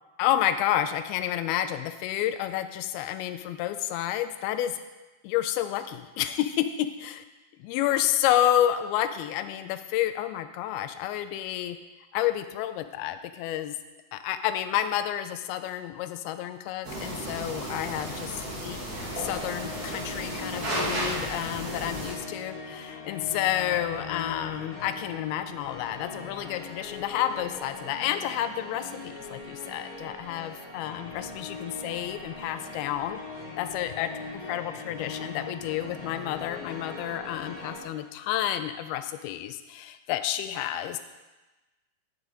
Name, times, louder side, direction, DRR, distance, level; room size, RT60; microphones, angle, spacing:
voice 1, 0.2-4.8 5.2-6.9 7.6-11.8 12.1-13.8 14.1-18.8 19.2-33.2 33.6-41.0, left 12 dB, 85° left, 10 dB, 2.3 m, -30 dB
sound 1, 16.8-22.1, right 1 dB, 40° right, 1.4 m, -34 dB
sound 2, 18.8-37.8, left 3 dB, 60° left, 4.1 m, -40 dB
7.3 x 6.9 x 5.1 m, 1.1 s
omnidirectional pair, 4.6 m